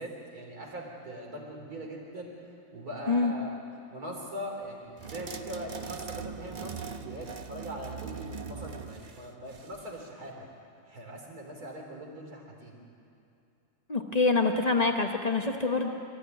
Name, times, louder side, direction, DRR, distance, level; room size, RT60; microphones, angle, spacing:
voice 1, 0.0-2.3 2.7-3.6 3.9-10.5 10.9-12.8, right 1 dB, 40° right, 0 dB, 4.0 m, -41 dB
sound 1, 5.0-10.0, right 6 dB, 70° right, 0.4 m, -41 dB
voice 2, 13.9-15.9, left 3 dB, 70° left, 3 dB, 0.3 m, -25 dB
25.0 x 14.5 x 9.3 m, 2.7 s
omnidirectional pair, 2.4 m